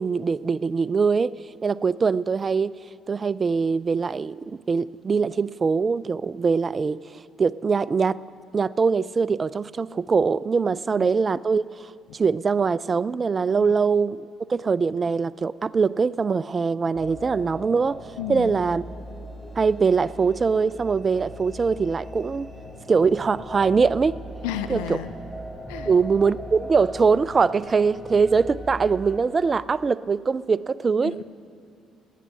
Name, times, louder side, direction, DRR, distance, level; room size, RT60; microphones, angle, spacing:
voice 1, 0.0-1.3 1.6-2.7 3.1-7.0 7.4-8.2 8.5-18.0 18.3-18.8 19.6-22.5 22.9-24.2 24.7-25.0 25.9-31.2, right 5 dB, 35° right, 20 dB, 0.3 m, -22 dB
sound 1, 16.9-29.2, equal, 5° right, 4.3 m, -39 dB
voice 2, 18.2-18.6 24.4-25.1 25.7-25.9 31.0-31.2, left 10 dB, 75° left, 10 dB, 0.4 m, -32 dB
18.5 x 9.3 x 5.6 m, 2.3 s
hypercardioid pair, 50°, 0 cm